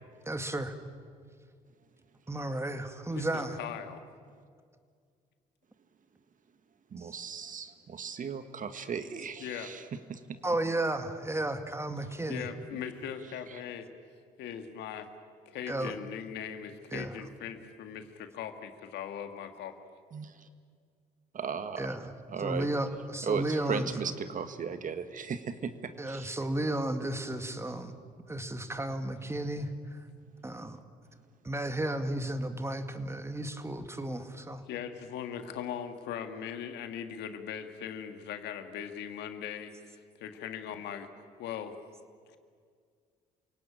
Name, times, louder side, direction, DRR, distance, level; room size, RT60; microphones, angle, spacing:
voice 1, 0.3-0.7 2.3-3.6 7.0-7.2 10.4-12.4 15.7-15.9 16.9-17.2 21.8-22.1 22.4-24.1 26.0-27.9 28.3-30.1 30.4-30.8 31.4-34.6, right 1 dB, 15° right, 8 dB, 2.2 m, -33 dB
voice 2, 3.6-4.0 9.4-9.7 12.3-13.9 14.4-15.1 15.5-19.8 34.7-39.7 40.2-41.1 41.4-41.8 42.3-42.4, left 8 dB, 75° left, 7 dB, 1.9 m, -39 dB
voice 3, 6.9-9.8 10.1-10.4 20.1-20.3 21.3-21.9 22.3-22.7 23.2-26.3, right 6 dB, 50° right, 9 dB, 1.8 m, -36 dB
28.0 x 18.0 x 9.0 m, 2.1 s
supercardioid pair, 65°, 18 cm